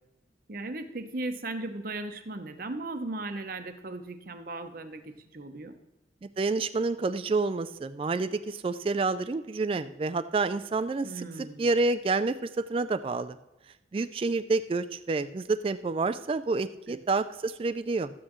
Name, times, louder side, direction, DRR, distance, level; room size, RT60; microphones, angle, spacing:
voice 1, 0.5-5.8 11.0-11.7 16.9-17.0, right 2 dB, 50° right, 8 dB, 0.8 m, -37 dB
voice 2, 6.2-11.2 11.6-13.4 13.9-18.1, right 3 dB, 30° right, 11 dB, 0.3 m, -28 dB
12.5 x 8.6 x 3.1 m, 0.96 s
head